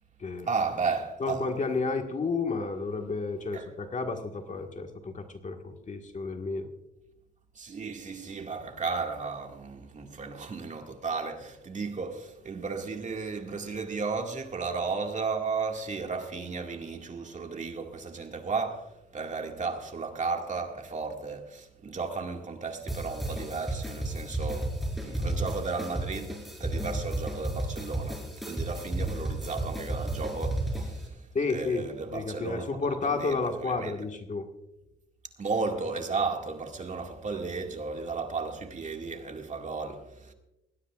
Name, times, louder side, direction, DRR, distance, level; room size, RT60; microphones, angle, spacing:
voice 1, 0.5-1.5 3.5-3.7 7.6-24.7 25.0-34.0 35.4-40.3, right 4 dB, 40° right, 2.1 m, -34 dB
voice 2, 1.2-6.7 31.3-31.9 32.1-34.5, left 4 dB, 40° left, 1.7 m, -31 dB
sound 1, 22.9-31.1, right 1 dB, ahead, 4.9 m, -33 dB
20.0 x 16.5 x 2.5 m
cardioid pair, 90°, 20 cm